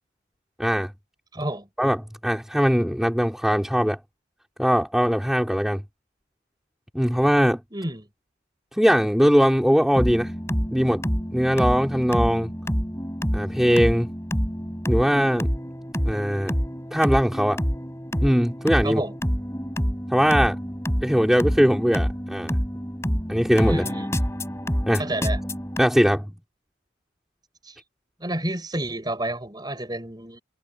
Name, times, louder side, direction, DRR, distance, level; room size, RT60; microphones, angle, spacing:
voice 1, 0.6-0.9 1.8-2.0 2.2-4.0 4.6-5.8 6.9-7.6 8.7-10.3 10.7-11.0 11.3-12.5 13.3-14.1 14.9-15.5 16.1-16.6 16.9-17.6 18.2-19.0 20.1-20.6 21.0-22.6 23.3-23.8 24.9-25.1 25.8-26.3, equal, ahead, 3.0 m, -20 dB
voice 2, 1.3-1.7 7.7-8.1 18.8-19.1 23.7-24.1 25.0-25.4 27.6-27.8 28.2-30.4, right 1 dB, 20° right, 4.8 m, -30 dB
sound 1, 9.9-25.8, equal, 15° left, 4.8 m, -27 dB
head